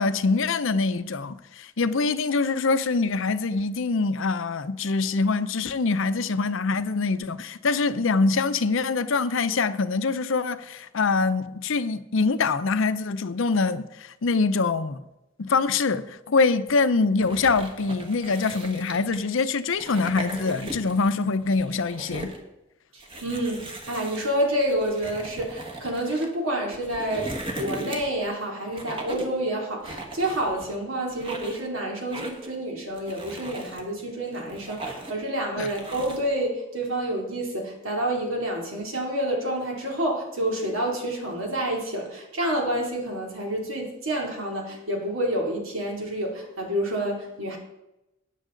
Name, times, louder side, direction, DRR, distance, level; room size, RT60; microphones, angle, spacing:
voice 1, 0.0-15.0 15.4-22.3 35.6-35.7, left 4 dB, 65° left, 0.6 m, -24 dB
sound 1, 17.2-19.3 19.7-21.1 21.4-22.4 23.0-26.3 26.7-28.3 28.7-29.4 29.8-30.8 31.1-31.7 32.1-32.6 33.0-33.8 34.3-35.2 35.6-36.3, right 1 dB, 25° right, 1.5 m, -38 dB
voice 2, 22.9-47.6, right 1 dB, 70° right, 2.9 m, -28 dB
13.0 x 9.2 x 3.9 m
head